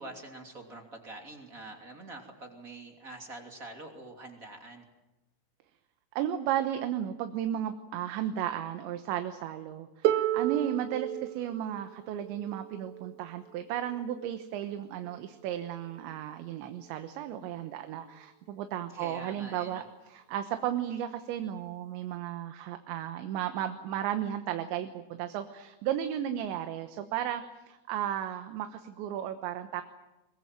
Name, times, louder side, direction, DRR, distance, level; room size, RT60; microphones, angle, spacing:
voice 1, 0.0-4.8 18.9-19.8, right 2 dB, 20° right, 3 dB, 2.4 m, -45 dB
voice 2, 6.2-19.8 20.1-29.8, right 11 dB, 75° right, 8 dB, 3.2 m, -34 dB
Harp, 10.1-15.8 16.9-17.0, right 13 dB, 90° right, 3.6 m, -34 dB
23.0 x 22.5 x 9.1 m, 1.0 s
omnidirectional pair, 5.7 m